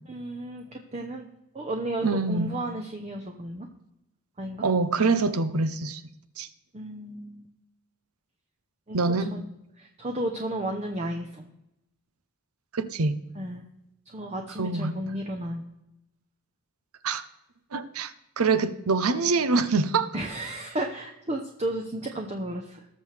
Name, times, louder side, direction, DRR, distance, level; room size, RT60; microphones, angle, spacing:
voice 1, 0.1-1.3 1.5-3.7 4.4-4.6 6.7-7.5 8.9-9.0 9.3-9.4 9.8-11.5 13.4-13.6 14.1-15.7 20.1-22.9, right 1 dB, 30° right, 2 dB, 0.8 m, -33 dB
voice 2, 2.0-2.5 4.6-6.0 6.4-6.5 8.9-9.3 12.7-13.2 14.6-15.0 17.0-17.3 17.7-20.1, right 4 dB, 85° right, 13 dB, 0.7 m, -25 dB
19.0 x 6.5 x 3.4 m, 0.87 s
head